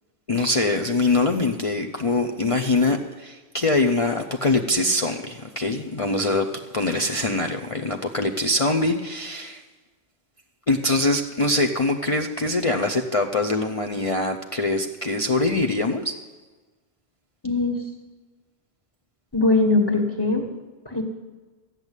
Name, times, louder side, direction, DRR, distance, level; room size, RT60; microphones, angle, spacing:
voice 1, 0.3-9.6 10.7-16.2, left 2 dB, 35° left, 3 dB, 0.7 m, -23 dB
voice 2, 17.4-17.8 19.3-20.5 20.8-21.0, left 3 dB, 20° left, 0 dB, 1.7 m, -21 dB
13.5 x 8.9 x 8.1 m, 1.3 s
omnidirectional pair, 1.0 m